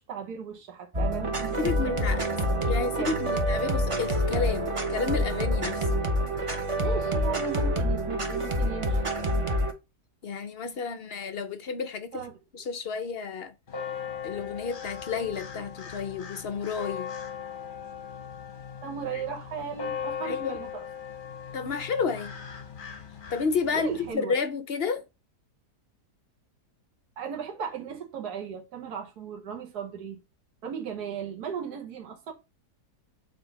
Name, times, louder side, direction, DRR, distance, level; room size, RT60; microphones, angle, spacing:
voice 1, 0.0-2.6 3.0-3.4 6.7-9.0 12.1-12.4 18.8-20.9 23.7-24.4 27.2-30.2 30.6-32.3, right 7 dB, 80° right, 1.7 m, -37 dB
sound 1, 0.9-9.7, equal, 25° right, 0.7 m, -27 dB
voice 2, 1.6-2.2 2.7-5.9 10.2-12.3 12.5-13.5 14.2-17.1 19.1-19.2 20.2-20.6 21.5-22.4 23.3-25.0, left 5 dB, 65° left, 0.6 m, -31 dB
sound 2, 13.7-24.1, left 7 dB, 40° left, 0.9 m, -39 dB
6.9 x 4.0 x 4.0 m
omnidirectional pair, 1.7 m